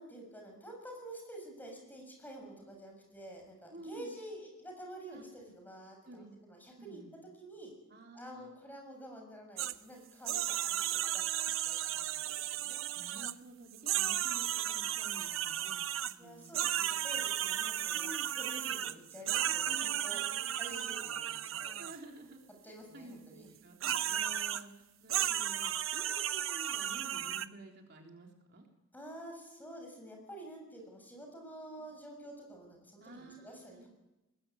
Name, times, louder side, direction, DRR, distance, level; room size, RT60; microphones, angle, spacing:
voice 1, 0.0-7.0 7.4-7.7 8.1-12.8 16.2-20.2 20.5-21.7 22.6-23.5 23.9-24.2 28.9-33.9, right 1 dB, 10° left, 1 dB, 7.1 m, -49 dB
voice 2, 3.7-4.1 5.1-5.2 6.0-6.3 6.8-7.1 7.9-8.5 12.9-16.8 17.9-18.3 19.5-20.6 21.8-28.7 31.8-31.9 33.0-33.9, right 1 dB, 55° right, 1 dB, 3.3 m, -52 dB
sound 1, 9.6-9.7 10.3-13.3 13.7-16.1 16.5-22.0 23.8-24.6 25.1-27.5, right 11 dB, 70° right, 0.8 m, -34 dB
22.0 x 20.0 x 8.7 m, 1.0 s
head